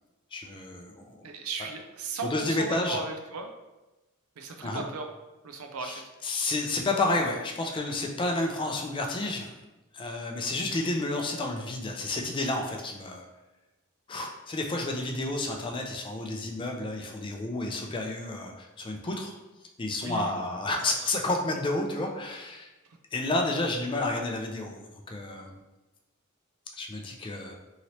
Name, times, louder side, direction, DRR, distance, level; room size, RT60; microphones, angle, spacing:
voice 1, 0.3-1.3 2.2-3.0 4.6-4.8 5.8-9.6 9.9-13.3 14.1-19.3 19.8-22.7 23.1-25.6 26.8-27.6, left 2 dB, 25° left, 2 dB, 0.3 m, -31 dB
voice 2, 1.2-3.5 4.4-5.1 5.4-6.0 20.0-20.3 20.8-20.9, right 3 dB, 85° right, 4 dB, 0.5 m, -36 dB
2.9 x 2.8 x 2.8 m, 1.0 s
head